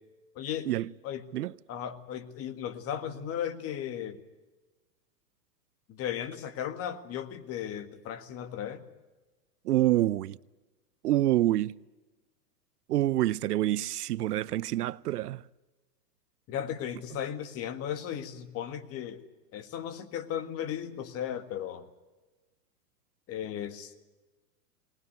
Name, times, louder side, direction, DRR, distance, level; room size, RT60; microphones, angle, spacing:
voice 1, 0.3-0.7 1.0-1.2 1.7-4.2 5.9-8.8 16.5-19.2 19.5-21.9 23.3-23.9, left 9 dB, 30° left, 1.8 m, -36 dB
voice 2, 9.7-10.4 11.0-11.7 12.9-15.4, right 14 dB, 70° right, 0.7 m, -27 dB
21.0 x 19.5 x 9.4 m
hypercardioid pair, 125°, 48 cm